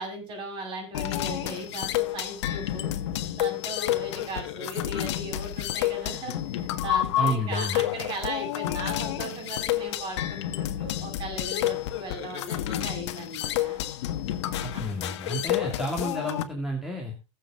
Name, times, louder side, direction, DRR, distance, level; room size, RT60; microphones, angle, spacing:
voice 1, 0.0-2.9 3.4-13.8 14.7-14.8, right 2 dB, 30° right, 3 dB, 7.4 m, -37 dB
sound 1, 0.9-16.4, left 13 dB, 70° left, 1.5 m, -30 dB
voice 2, 7.2-7.8 14.6-17.1, equal, 5° right, 0 dB, 2.4 m, -31 dB
19.0 x 7.6 x 3.6 m, 0.28 s
supercardioid pair, 140°, 15 cm